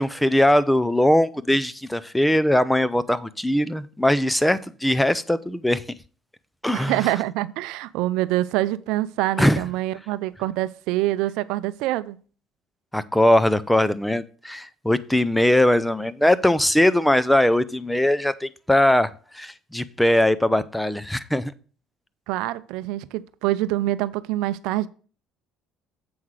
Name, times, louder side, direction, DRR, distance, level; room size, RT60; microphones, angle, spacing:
voice 1, 0.0-5.8 6.6-6.9 9.4-9.6 12.9-19.1 19.3-21.5, left 1 dB, 5° left, 0.5 m, -20 dB
voice 2, 6.7-12.2 22.3-24.9, right 16 dB, 80° right, 0.5 m, -25 dB
7.8 x 5.7 x 4.8 m
cardioid pair, 100°, 0 cm